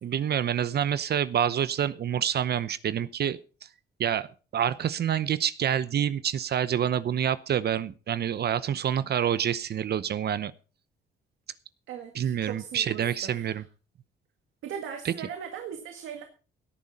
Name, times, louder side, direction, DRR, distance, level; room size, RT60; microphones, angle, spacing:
voice 1, 0.0-3.4 4.0-4.3 4.5-10.5 12.1-13.6 15.0-15.1, right 9 dB, 55° right, 16 dB, 0.8 m, -27 dB
voice 2, 11.9-13.6 14.6-16.2, right 8 dB, 80° right, 5 dB, 1.9 m, -39 dB
17.5 x 9.7 x 4.2 m, 0.35 s
cardioid pair, 90°, 20 cm